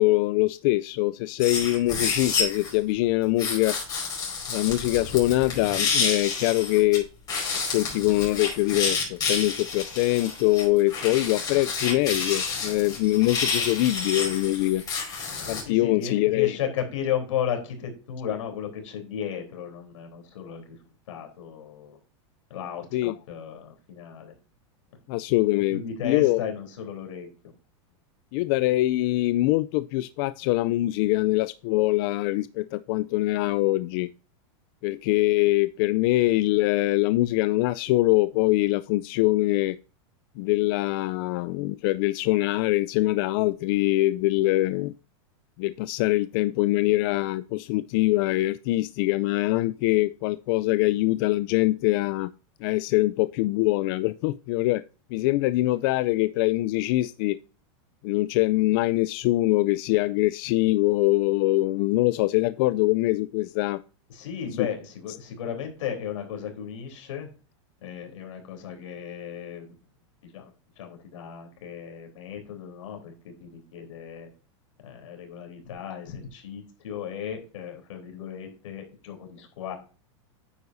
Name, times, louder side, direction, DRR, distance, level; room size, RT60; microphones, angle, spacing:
voice 1, 0.0-3.8 4.5-7.1 7.5-14.8 15.5-16.6 22.9-23.2 25.1-26.5 28.3-34.1 34.8-39.8 40.4-44.9 45.6-52.3 52.6-54.8 55.1-57.4 58.0-63.8 64.5-64.7, left 18 dB, 45° left, 0.4 m, -23 dB
sound 1, 1.4-2.7 3.4-7.0 7.3-15.6, left 5 dB, 25° left, 4.9 m, -29 dB
voice 2, 15.7-20.8 21.1-22.0 22.5-24.3 25.7-27.3 64.1-67.3 67.8-69.7 70.2-70.5 70.8-74.3 74.8-79.7, left 8 dB, 80° left, 3.5 m, -35 dB
9.6 x 7.9 x 2.6 m
supercardioid pair, 150°, 16 cm